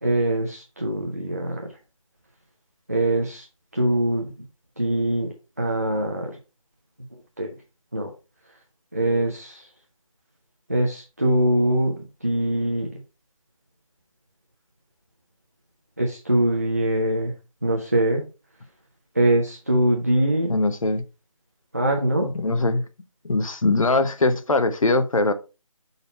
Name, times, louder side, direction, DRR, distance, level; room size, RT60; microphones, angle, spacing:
voice 1, 0.0-1.7 2.9-3.5 3.7-4.2 4.8-5.3 5.6-6.3 7.4-7.5 7.9-8.1 8.9-9.7 10.7-11.9 12.2-12.9 16.0-17.3 17.6-18.2 19.2-20.5 21.7-22.3, right 1 dB, 25° right, 0.6 m, -22 dB
voice 2, 20.5-21.0 22.2-22.8 23.2-25.3, left 2 dB, 70° left, 0.8 m, -21 dB
5.7 x 4.0 x 4.2 m
figure-of-eight pair, 180°, 18 cm